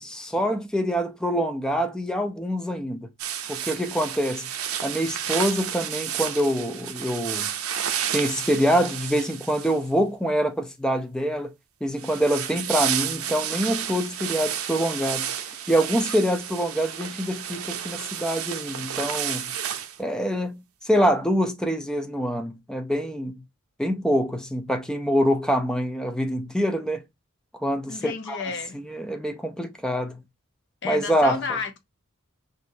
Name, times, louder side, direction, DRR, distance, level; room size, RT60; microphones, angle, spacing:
voice 1, 0.0-3.1 3.5-4.5 4.8-7.5 8.1-11.5 11.8-15.3 15.7-19.5 20.0-23.3 23.8-27.0 27.6-28.4 28.7-30.2 30.8-31.6, equal, 5° left, 0.6 m, -25 dB
sound 1, 3.2-10.0 12.0-20.0, right 9 dB, 85° right, 0.6 m, -31 dB
voice 2, 27.9-28.8 30.8-31.8, left 5 dB, 55° left, 0.8 m, -31 dB
6.2 x 2.6 x 2.7 m
head